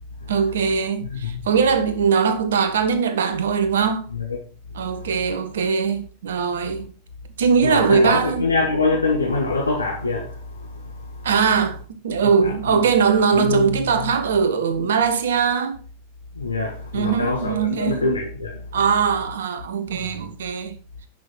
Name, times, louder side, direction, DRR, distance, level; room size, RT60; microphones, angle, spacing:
voice 1, 0.3-4.1 4.7-6.9 7.4-8.5 11.2-15.8 16.9-18.1 18.7-20.8, right 6 dB, 60° right, 1.4 m, -21 dB
voice 2, 1.0-1.4 4.1-4.4 5.0-5.3 7.6-10.7 12.4-12.8 13.3-14.1 16.4-18.6 20.1-20.3, left 3 dB, 80° left, 1.6 m, -24 dB
10.5 x 6.2 x 4.4 m
figure-of-eight pair, 90°, 0 cm